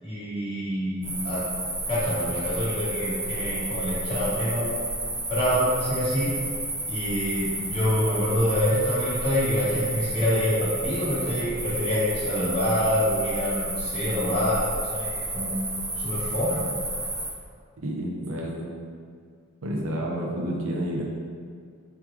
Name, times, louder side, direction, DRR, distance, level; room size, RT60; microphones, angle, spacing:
voice 1, 0.0-4.9 5.3-6.3 6.9-14.6 14.9-15.6 16.0-16.6, equal, 25° left, -9 dB, 1.1 m, -26 dB
sound 1, 1.0-17.3, right 1 dB, 10° right, 0.3 m, -31 dB
voice 2, 17.8-18.8 19.6-21.0, right 1 dB, 70° right, -2 dB, 0.6 m, -30 dB
3.6 x 3.1 x 3.2 m, 2.1 s
head